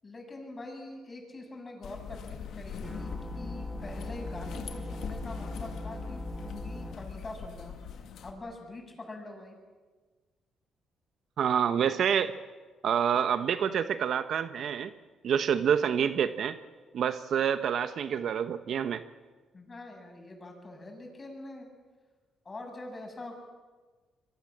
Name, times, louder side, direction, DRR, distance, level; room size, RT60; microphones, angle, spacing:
voice 1, 0.0-7.7 8.2-9.6 19.5-21.7 22.4-23.4, left 2 dB, 30° left, 3 dB, 7.4 m, -44 dB
sound 1, 1.8-8.3, left 7 dB, 70° left, 2.2 m, -42 dB
sound 2, 2.8-6.9, equal, ahead, 4.6 m, -40 dB
voice 2, 11.4-12.3 12.8-14.9 15.2-16.6 16.9-19.0, right 8 dB, 65° right, 11 dB, 1.0 m, -27 dB
26.5 x 22.5 x 7.4 m, 1.4 s
cardioid pair, 90°, 0 cm